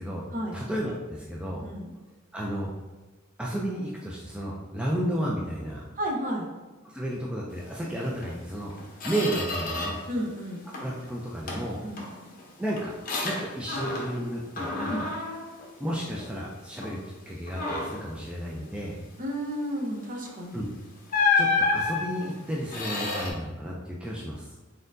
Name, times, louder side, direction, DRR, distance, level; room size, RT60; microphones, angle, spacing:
voice 1, 0.5-1.6 2.3-2.7 3.4-5.9 6.8-8.7 9.0-10.0 10.8-11.8 12.6-12.9 13.2-15.1 15.8-17.0 17.3-19.0 20.5-20.7 21.3-24.5, right 1 dB, 5° right, -4 dB, 0.3 m, -32 dB
voice 2, 1.6-1.9 6.0-6.5 10.1-10.7 11.8-12.1 14.9-15.1 19.2-20.7, equal, 40° right, 0 dB, 0.7 m, -32 dB
Squeak, 8.2-8.3 8.7-10.1 10.5-11.0 11.5-14.3 14.6-16.4 16.8-17.0 17.5-18.1 20.2-20.4 21.1-23.3, left 4 dB, 40° left, 0.8 m, -30 dB
4.2 x 3.8 x 2.6 m, 1.2 s
head